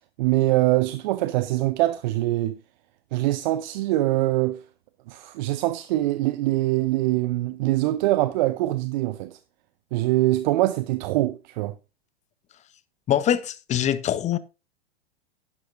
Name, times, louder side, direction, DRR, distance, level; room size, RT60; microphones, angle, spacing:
voice 1, 0.2-2.6 3.1-4.6 5.1-9.4 9.9-11.7, right 16 dB, 45° right, 0.7 m, -23 dB
voice 2, 13.1-14.4, left 10 dB, 20° left, 0.8 m, -23 dB
11.0 x 11.0 x 2.5 m
figure-of-eight pair, 95°, 32 cm